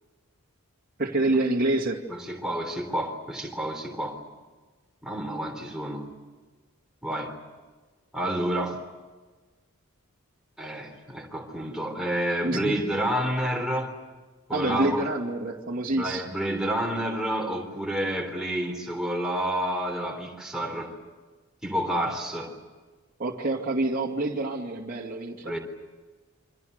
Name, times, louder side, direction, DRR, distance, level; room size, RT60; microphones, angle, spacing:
voice 1, 1.0-2.0 12.4-12.7 14.5-16.3 23.2-25.5, right 2 dB, 40° right, -2 dB, 2.4 m, -27 dB
voice 2, 2.1-4.2 5.0-6.1 7.0-7.3 8.1-8.8 10.6-14.0 14.5-15.1 16.0-20.9 21.6-22.6 25.4-25.6, right 1 dB, 5° right, 1 dB, 3.7 m, -29 dB
29.0 x 25.0 x 6.7 m, 1.3 s
head